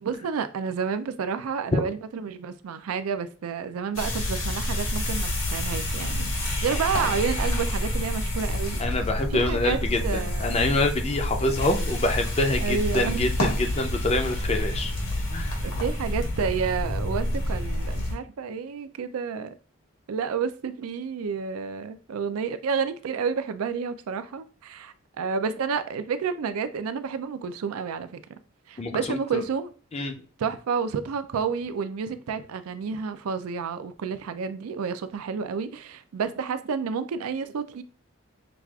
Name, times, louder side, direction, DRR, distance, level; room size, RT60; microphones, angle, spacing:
voice 1, 0.0-8.8 9.3-10.6 12.6-13.5 15.6-19.5 20.1-28.2 28.7-29.7 30.4-37.8, right 6 dB, 85° right, 0.4 m, -30 dB
sound 1, 3.9-18.1, left 1 dB, 80° left, 1.5 m, -28 dB
voice 2, 8.8-14.9 15.3-15.5 28.8-29.4 29.9-30.1, left 2 dB, 30° left, 0.4 m, -26 dB
5.9 x 2.4 x 2.3 m
head